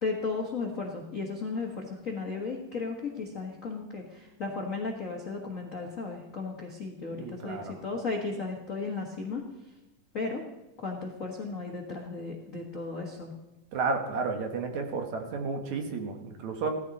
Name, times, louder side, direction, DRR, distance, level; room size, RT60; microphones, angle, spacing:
voice 1, 0.0-9.7 10.1-10.4 10.8-13.3, left 4 dB, 85° left, 0 dB, 0.7 m, -35 dB
voice 2, 7.1-7.7 13.7-16.7, right 4 dB, 60° right, 4 dB, 2.5 m, -32 dB
16.5 x 13.5 x 4.2 m, 1.0 s
omnidirectional pair, 3.9 m